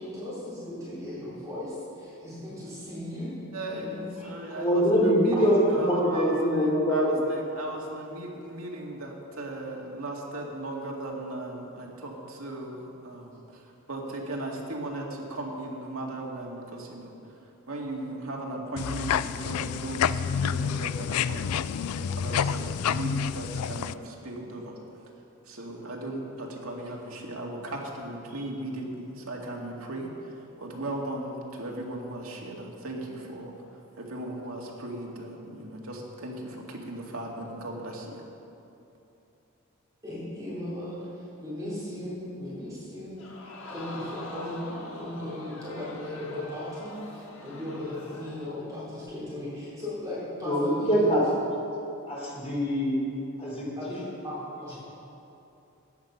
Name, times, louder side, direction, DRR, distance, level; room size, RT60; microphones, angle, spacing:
voice 1, 0.0-3.3 3.7-4.0 5.3-5.4 22.2-23.1 40.0-51.2 53.8-53.9 54.2-54.8, left 1 dB, 15° right, -9 dB, 3.5 m, -37 dB
voice 2, 3.5-3.8 4.2-13.6 13.9-17.2 17.7-24.7 25.5-33.5 34.0-38.2, right 1 dB, 75° right, -1 dB, 2.1 m, -37 dB
voice 3, 4.5-5.5 5.8-7.2 50.4-51.2 52.1-53.0 53.4-53.7, equal, 25° left, -4 dB, 3.3 m, -24 dB
sound 1, 18.8-23.9, left 8 dB, 85° left, 0.3 m, -28 dB
Crowd, 43.2-48.6 49.1-49.2, left 2 dB, 65° left, 1.7 m, -43 dB
14.0 x 9.7 x 5.7 m, 2.9 s
head